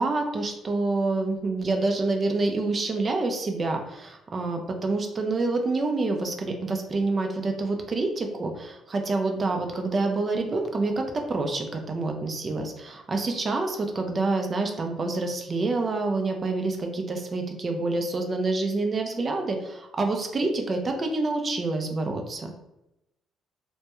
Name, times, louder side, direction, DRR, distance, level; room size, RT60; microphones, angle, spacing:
voice 1, 0.0-11.0 11.3-22.5, right 3 dB, 40° right, 3 dB, 0.4 m, -27 dB
2.2 x 2.1 x 2.9 m, 0.89 s
supercardioid pair, 75°, 0 cm